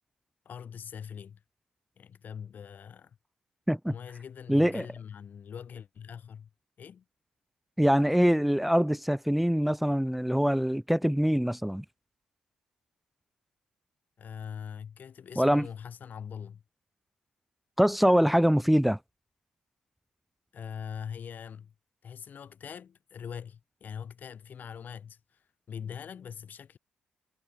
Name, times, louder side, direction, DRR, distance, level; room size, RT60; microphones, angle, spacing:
voice 1, 0.5-1.4 2.0-3.2 3.9-6.5 6.8-7.1 14.2-16.6 20.5-21.7 22.0-26.8, left 7 dB, 55° left, 1.7 m, -42 dB
voice 2, 4.5-4.8 7.8-11.8 15.4-15.7 17.8-19.0, equal, 5° right, 0.7 m, -24 dB
hypercardioid pair, 40°, 4 cm